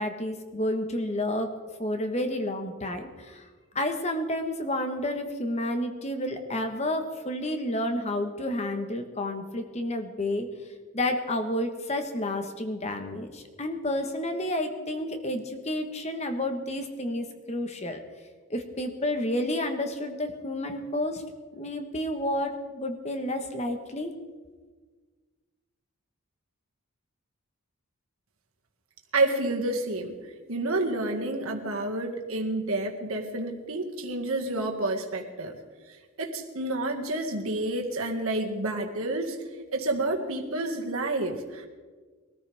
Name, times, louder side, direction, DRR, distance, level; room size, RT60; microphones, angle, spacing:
voice 1, 0.0-1.5 1.8-3.5 3.7-10.5 10.9-18.0 18.5-21.2 21.5-24.1, left 1 dB, 30° left, 6 dB, 1.3 m, -30 dB
voice 2, 29.1-30.2 30.5-35.6 35.9-39.4 39.7-41.7, right 2 dB, 70° right, 2 dB, 1.9 m, -29 dB
22.5 x 14.0 x 3.5 m, 1.4 s
head